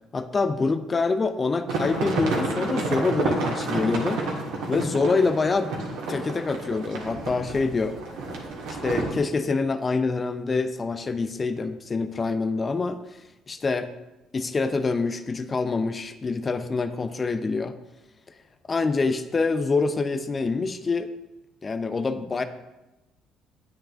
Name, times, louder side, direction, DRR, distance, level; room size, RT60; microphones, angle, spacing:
voice 1, 0.1-4.2 4.7-5.7 6.1-8.0 8.7-13.0 13.5-13.9 14.3-17.8 18.7-21.1 21.6-22.4, left 4 dB, 30° left, 10 dB, 0.6 m, -26 dB
sound 1, 1.7-9.1, right 3 dB, 70° right, 1.6 m, -30 dB
9.8 x 8.9 x 2.6 m, 1.0 s
hypercardioid pair, 55°, 0 cm